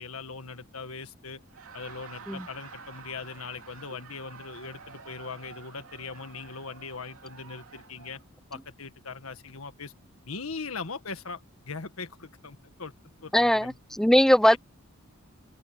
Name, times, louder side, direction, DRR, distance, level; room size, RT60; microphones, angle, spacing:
voice 1, 0.0-1.4 1.7-8.2 8.5-9.9 10.2-12.9 13.2-13.8 14.5-14.6, left 4 dB, 80° left, 1.7 m, -40 dB
Laughter, 1.4-8.2, right 5 dB, 85° right, 2.7 m, -49 dB
voice 2, 13.3-14.6, equal, ahead, 0.7 m, -20 dB
open air
head